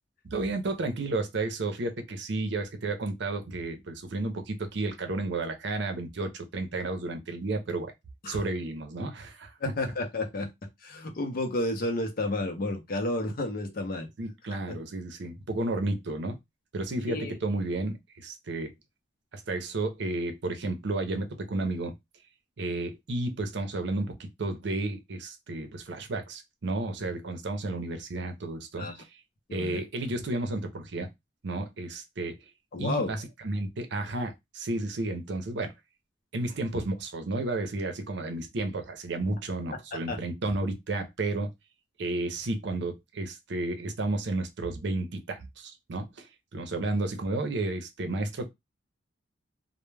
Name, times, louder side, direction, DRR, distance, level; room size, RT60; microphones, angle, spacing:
voice 1, 0.2-7.9 8.3-9.5 14.2-16.4 16.7-18.7 19.3-21.9 22.6-28.9 29.5-31.1 31.4-32.4 32.8-35.7 36.3-41.5 42.0-48.5, right 2 dB, 65° right, 0.6 m, -32 dB
voice 2, 9.6-10.5 10.8-14.1 14.7-14.8 17.1-17.4 28.8-29.0 29.5-29.8 32.7-33.1 39.9-40.2, left 2 dB, 50° left, 0.6 m, -31 dB
2.2 x 2.1 x 3.2 m
head